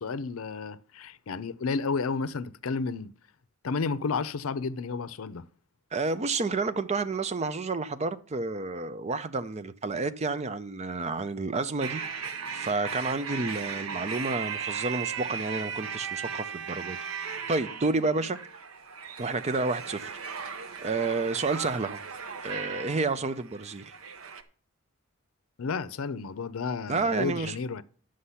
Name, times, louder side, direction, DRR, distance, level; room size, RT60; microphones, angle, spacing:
voice 1, 0.0-3.1 3.6-5.4 25.6-27.8, left 4 dB, 80° left, 0.5 m, -32 dB
voice 2, 5.9-12.0 12.5-17.0 17.5-18.4 19.2-20.1 20.8-22.0 22.4-23.9 26.9-27.6, right 3 dB, 30° right, 0.5 m, -30 dB
sound 1, 11.8-24.4, right 6 dB, 80° right, 0.8 m, -37 dB
9.8 x 6.4 x 5.6 m
head